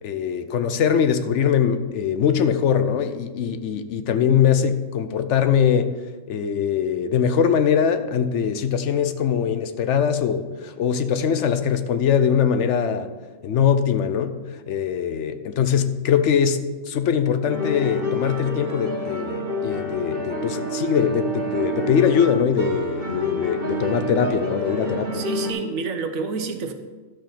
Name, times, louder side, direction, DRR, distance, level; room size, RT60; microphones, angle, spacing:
voice 1, 0.0-5.9 6.3-13.1 13.4-14.4 14.7-25.2, left 8 dB, 70° left, 10 dB, 0.9 m, -22 dB
sound 1, 17.5-25.5, equal, 45° right, 1.6 m, -28 dB
voice 2, 25.1-26.7, right 4 dB, 85° right, 7 dB, 1.3 m, -28 dB
12.0 x 5.4 x 5.7 m, 1.3 s
omnidirectional pair, 1.4 m